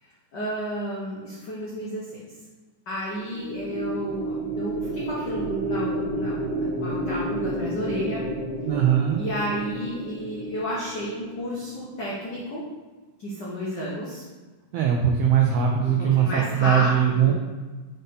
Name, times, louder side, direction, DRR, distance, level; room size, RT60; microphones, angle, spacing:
voice 1, 0.0-2.2 2.9-8.2 9.2-12.6 13.2-14.2 15.9-17.3, equal, 80° left, -6 dB, 0.9 m, -32 dB
sound 1, 3.1-11.5, right 2 dB, 55° right, 1.9 m, -30 dB
voice 2, 8.6-9.2 14.7-17.3, right 9 dB, 85° right, 1 dB, 1.4 m, -21 dB
5.4 x 3.8 x 5.5 m, 1.3 s
omnidirectional pair, 3.5 m